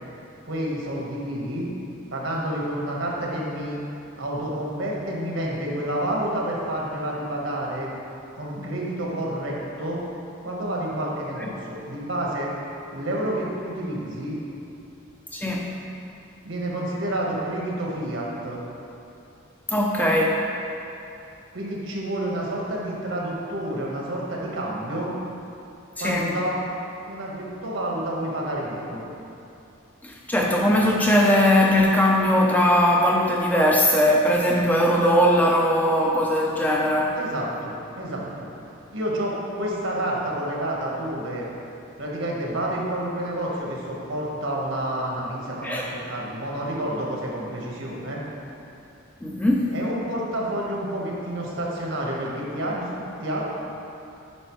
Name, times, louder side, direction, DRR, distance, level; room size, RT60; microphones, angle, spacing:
voice 1, 0.4-1.7 2.1-3.8 4.2-7.9 8.3-10.0 10.4-12.5 12.9-14.4 16.4-18.6 21.5-25.1 26.0-26.5 27.1-29.0 37.1-38.5 38.9-41.4 42.0-48.2 49.7-53.4, right 1 dB, 70° right, -3 dB, 1.3 m, -29 dB
voice 2, 15.3-15.7 19.7-20.4 26.0-26.3 30.0-37.2 45.6-45.9 49.2-49.7, equal, 10° left, -1 dB, 0.4 m, -20 dB
8.9 x 5.3 x 3.1 m, 2.8 s
head